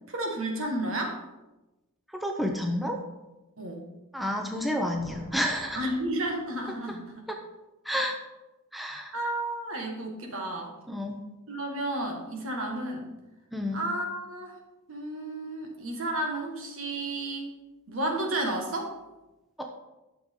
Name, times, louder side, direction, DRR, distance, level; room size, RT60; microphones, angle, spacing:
voice 1, 0.1-1.2 3.6-3.9 5.7-7.2 9.1-10.7 11.5-13.1 13.7-14.6 14.9-17.5 17.9-19.0, right 1 dB, 70° right, 1 dB, 1.8 m, -32 dB
voice 2, 2.1-3.0 4.1-5.9 6.9-7.0 7.3-7.4 7.8-8.2 8.7-9.1 10.9-11.2 13.5-13.8 19.6-19.7, equal, ahead, 2 dB, 0.7 m, -30 dB
sound 1, 4.9-6.9, equal, 35° right, 2.1 m, -48 dB
11.5 x 6.5 x 3.8 m, 1.0 s
head